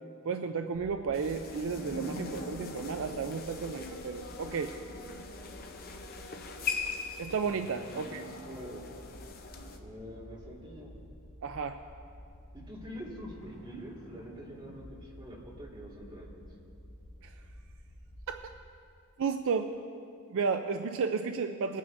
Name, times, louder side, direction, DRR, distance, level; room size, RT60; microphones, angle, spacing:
voice 1, 0.3-4.8 7.2-8.2 11.4-11.8 17.2-17.3 18.3-18.5 19.2-19.8 20.3-21.8, right 5 dB, 60° right, 6 dB, 0.4 m, -33 dB
sound 1, 0.7-18.6, equal, 25° left, 1.4 m, -51 dB
sound 2, 1.1-9.8, left 4 dB, 40° left, 0.8 m, -41 dB
voice 2, 7.9-8.8 9.7-11.0 12.5-16.4, equal, 20° right, -5 dB, 2.0 m, -45 dB
21.0 x 9.2 x 2.6 m, 2.5 s
head